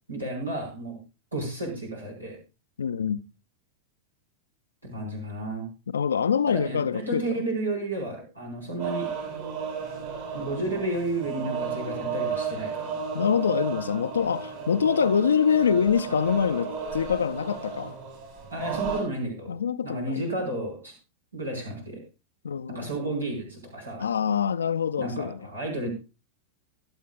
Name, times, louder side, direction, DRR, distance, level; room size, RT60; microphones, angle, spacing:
voice 1, 0.1-1.0 1.3-2.4 4.8-5.7 6.5-9.1 10.3-12.9 18.5-19.6 19.8-20.9 21.3-22.0 22.7-24.1 25.0-25.9, right 2 dB, 80° right, 5.4 m, -32 dB
voice 2, 2.8-3.2 5.9-7.2 13.1-18.0 19.5-20.2 22.4-22.9 24.0-25.5, left 7 dB, 70° left, 0.6 m, -25 dB
sound 1, 8.8-19.0, right 6 dB, 50° right, 6.1 m, -33 dB
24.5 x 8.4 x 2.4 m
figure-of-eight pair, 90°, 0 cm